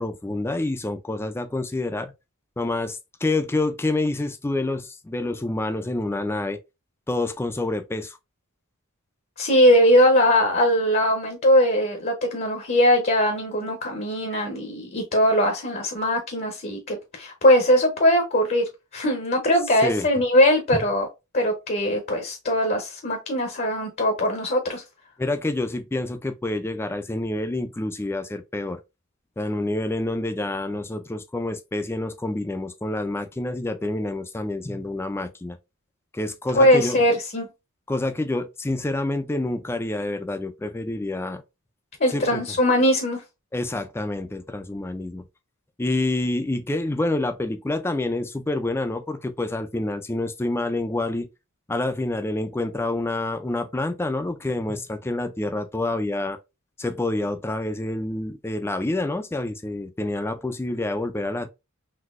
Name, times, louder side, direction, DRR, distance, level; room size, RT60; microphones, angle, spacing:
voice 1, 0.0-2.1 2.6-6.6 7.1-8.2 19.8-20.1 20.7-20.8 25.2-28.8 29.4-35.6 36.1-37.0 37.9-41.4 42.1-42.4 43.5-45.2 45.8-51.3 51.7-56.4 56.8-61.5, left 2 dB, 10° left, 0.3 m, -27 dB
voice 2, 9.4-21.1 21.3-24.8 36.5-37.5 42.0-43.2, equal, 45° left, 0.7 m, -20 dB
4.0 x 2.7 x 2.4 m
head